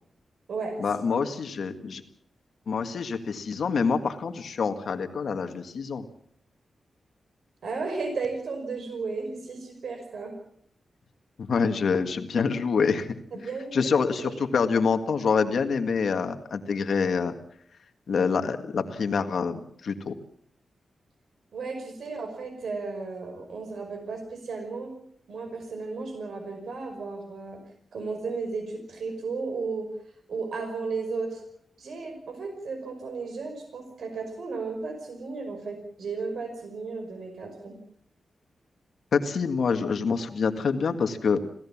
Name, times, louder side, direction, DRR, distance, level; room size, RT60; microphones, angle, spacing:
voice 1, 0.8-2.0 2.7-6.1 11.4-13.1 13.7-17.3 18.1-20.1 39.1-41.4, left 5 dB, 60° left, 7 dB, 1.9 m, -26 dB
voice 2, 7.6-10.4 13.3-13.8 14.2-14.4 21.5-24.9 25.3-27.6 27.9-29.9 30.3-31.4 31.8-37.8, right 4 dB, 70° right, 5 dB, 5.4 m, -34 dB
26.0 x 16.5 x 7.3 m, 0.67 s
wide cardioid pair, 175°, 0 cm